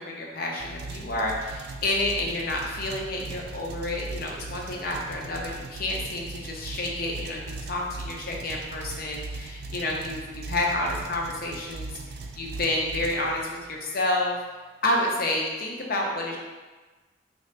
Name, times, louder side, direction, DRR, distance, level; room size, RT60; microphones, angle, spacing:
voice 1, 0.0-11.9 12.3-14.4 14.8-16.4, left 2 dB, 55° left, -1 dB, 0.7 m, -29 dB
sound 1, 0.6-13.8, right 3 dB, 60° right, 0.3 m, -39 dB
3.8 x 2.8 x 3.2 m, 1.3 s
head